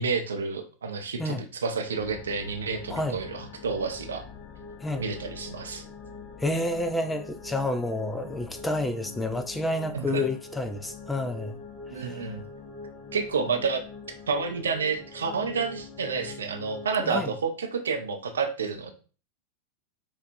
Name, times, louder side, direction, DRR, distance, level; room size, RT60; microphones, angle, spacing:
voice 1, 0.0-4.2 5.0-5.8 9.9-10.2 11.9-12.4 13.1-13.8 14.3-18.9, right 5 dB, 70° right, 0.5 m, -30 dB
sound 1, 1.9-17.1, left 4 dB, 30° left, 0.7 m, -43 dB
voice 2, 6.4-11.6 12.0-12.3 17.0-17.3, left 1 dB, 10° left, 0.3 m, -29 dB
4.5 x 2.3 x 2.6 m
figure-of-eight pair, 90°, 0 cm